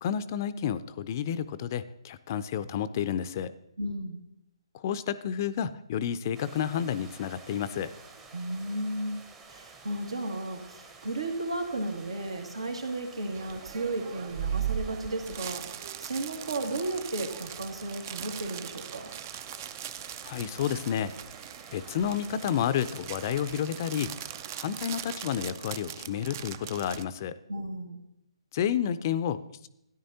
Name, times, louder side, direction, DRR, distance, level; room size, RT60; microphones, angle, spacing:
voice 1, 0.0-3.5 4.7-7.9 20.2-21.2 21.7-24.1 24.6-27.4 28.5-29.7, left 9 dB, 35° left, 14 dB, 0.4 m, -30 dB
voice 2, 3.8-4.2 8.3-19.1 27.5-28.0, right 2 dB, 85° right, 3 dB, 2.1 m, -34 dB
sound 1, 6.3-25.6, right 4 dB, 15° right, 0.8 m, -51 dB
sound 2, 13.3-27.0, right 10 dB, 35° right, 0.4 m, -39 dB
13.0 x 10.0 x 2.8 m, 0.81 s
hypercardioid pair, 150°, 3 cm